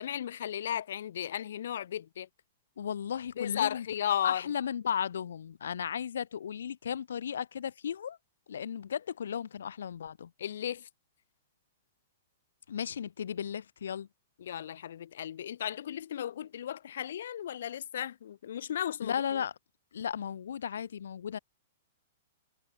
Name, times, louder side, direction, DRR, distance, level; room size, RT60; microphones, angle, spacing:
voice 1, 0.0-2.3 3.4-4.4 10.4-10.9 14.4-19.4, left 10 dB, 70° left, 2.5 m, -35 dB
voice 2, 2.8-3.9 4.2-8.2 8.5-10.3 12.7-14.1 19.0-19.5 19.9-21.4, left 8 dB, 85° left, 3.9 m, -35 dB
hypercardioid pair, 160°, 0 cm